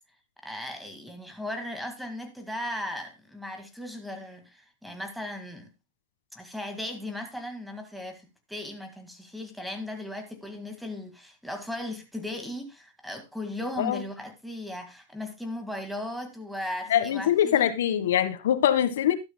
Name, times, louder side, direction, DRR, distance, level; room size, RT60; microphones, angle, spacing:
voice 1, 0.4-5.7 6.3-17.7, left 1 dB, ahead, 2.0 m, -37 dB
voice 2, 16.9-19.1, left 10 dB, 75° left, 1.5 m, -23 dB
12.5 x 12.0 x 2.3 m
hypercardioid pair, 135°, 0 cm